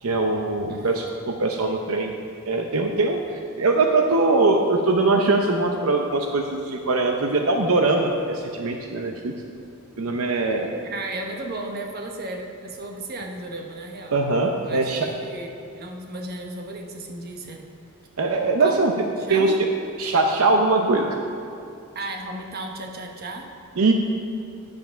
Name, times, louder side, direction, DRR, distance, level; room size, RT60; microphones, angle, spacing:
voice 1, 0.0-2.1 2.5-9.3 10.0-10.7 14.1-15.1 18.2-18.9 19.3-19.5 20.0-21.2 23.8-23.9, right 3 dB, 75° right, 3 dB, 0.7 m, -21 dB
voice 2, 0.7-1.0 10.9-14.2 14.6-17.7 18.6-18.8 19.2-19.5 21.9-23.5, right 2 dB, 45° right, 2 dB, 1.1 m, -34 dB
9.5 x 7.9 x 5.6 m, 2.5 s
head